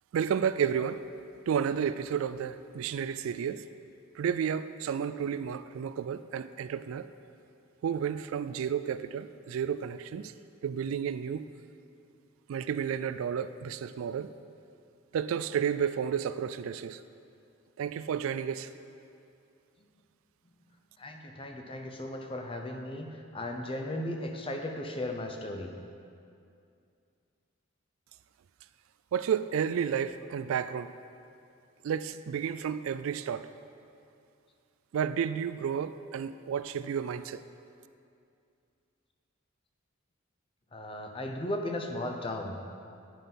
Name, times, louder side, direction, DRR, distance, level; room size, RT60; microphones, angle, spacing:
voice 1, 0.1-1.0 1.5-3.7 4.2-7.1 7.8-10.3 10.6-11.5 12.5-14.3 15.1-17.0 17.8-18.7 29.1-30.9 31.8-33.5 34.9-37.4, right 8 dB, 70° right, 0.3 m, -31 dB
voice 2, 21.0-23.1 23.3-25.7 40.7-42.8, left 1 dB, 25° left, 0.7 m, -36 dB
10.0 x 5.4 x 5.6 m
head